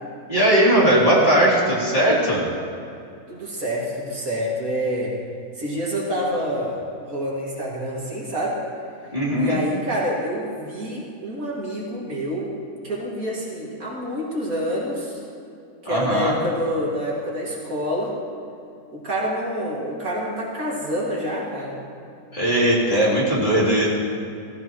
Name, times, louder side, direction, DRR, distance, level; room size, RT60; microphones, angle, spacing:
voice 1, 0.3-2.5 9.1-9.6 15.8-16.4 22.3-23.9, right 1 dB, 30° left, -7 dB, 3.2 m, -18 dB
voice 2, 3.3-5.1 5.6-6.8 7.1-8.6 9.4-12.5 12.8-15.2 15.8-18.1 18.9-21.8, equal, 55° right, -4 dB, 2.6 m, -27 dB
16.0 x 16.0 x 3.1 m, 2.5 s
omnidirectional pair, 1.8 m